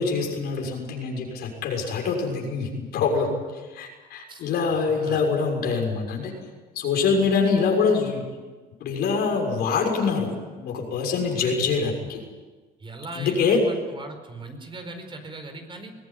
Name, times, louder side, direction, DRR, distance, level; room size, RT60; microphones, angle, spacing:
voice 1, 0.0-6.3 6.7-8.2 8.8-12.2 13.1-13.6, left 5 dB, 75° left, 1 dB, 6.7 m, -25 dB
voice 2, 4.9-5.2 11.3-11.7 12.8-15.9, right 2 dB, 30° right, 6 dB, 4.7 m, -39 dB
22.0 x 18.0 x 10.0 m, 1.3 s
cardioid pair, 110°, 17 cm